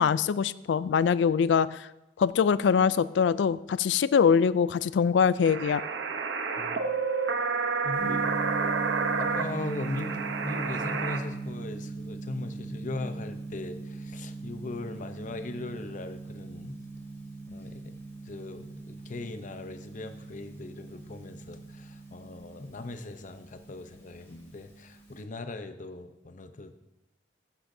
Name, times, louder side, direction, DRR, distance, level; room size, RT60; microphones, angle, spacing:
voice 1, 0.0-1.9 2.2-5.8, left 6 dB, 70° left, 17 dB, 0.3 m, -23 dB
sound 1, 5.4-11.2, right 5 dB, 80° right, 0.9 m, -30 dB
voice 2, 7.8-8.2 8.6-8.7 9.2-16.8 17.5-17.9 18.2-26.8, left 2 dB, 45° left, 9 dB, 0.7 m, -39 dB
Gong, 8.0-25.2, right 3 dB, 15° left, 2.7 m, -40 dB
15.0 x 10.0 x 2.7 m, 0.94 s
head